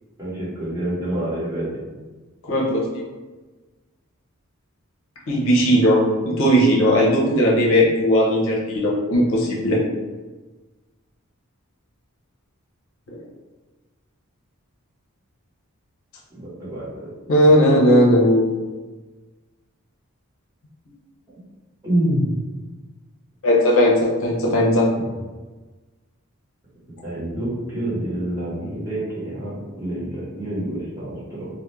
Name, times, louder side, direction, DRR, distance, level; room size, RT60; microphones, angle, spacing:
voice 1, 0.2-1.7 16.3-17.1 21.8-22.3 27.0-31.5, right 1 dB, 15° right, -10 dB, 1.0 m, -27 dB
voice 2, 2.5-2.8 5.3-9.8 13.1-13.2 17.3-18.5 23.4-24.9, equal, 65° left, -3 dB, 0.5 m, -17 dB
2.4 x 2.0 x 3.0 m, 1.3 s
head